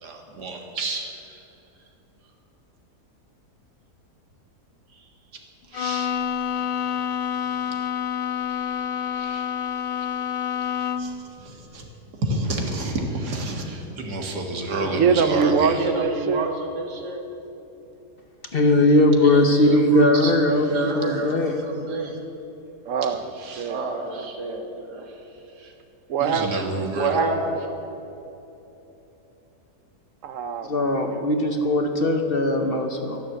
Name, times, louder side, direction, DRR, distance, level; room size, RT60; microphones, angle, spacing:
voice 1, 0.0-1.4 5.7-6.1 6.5-7.8 8.5-9.5 10.8-11.8 12.2-17.2 19.2-22.2 23.4-25.1 25.6-25.7 26.2-27.7, right 2 dB, 90° right, 2 dB, 2.3 m, -29 dB
Bowed string instrument, 5.7-11.3, left 8 dB, 80° left, 0.5 m, -28 dB
voice 2, 14.8-16.5 20.0-20.4 22.8-24.3 26.1-27.0 30.2-31.2, right 6 dB, 60° right, 10 dB, 1.1 m, -25 dB
voice 3, 18.5-21.6 30.7-33.2, left 1 dB, 40° left, 4 dB, 1.0 m, -20 dB
13.0 x 11.0 x 7.7 m, 3.0 s
omnidirectional pair, 1.7 m